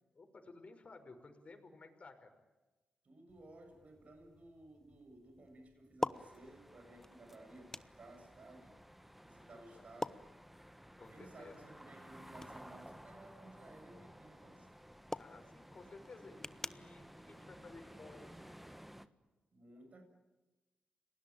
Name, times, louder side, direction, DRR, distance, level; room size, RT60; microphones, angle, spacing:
voice 1, 0.1-2.3 9.5-9.8 11.0-11.7 15.2-18.4, left 3 dB, 45° left, 6 dB, 5.7 m, -55 dB
voice 2, 3.0-8.7 9.2-10.3 11.1-14.7 19.5-20.0, right 2 dB, 50° right, 4 dB, 7.6 m, -57 dB
sound 1, 3.3-18.5, left 2 dB, 15° left, 0.9 m, -49 dB
Bus leaving and passing cars, 6.1-19.1, equal, 5° right, 1.6 m, -56 dB
30.0 x 19.5 x 9.0 m, 1.1 s
cardioid pair, 65°, 3 cm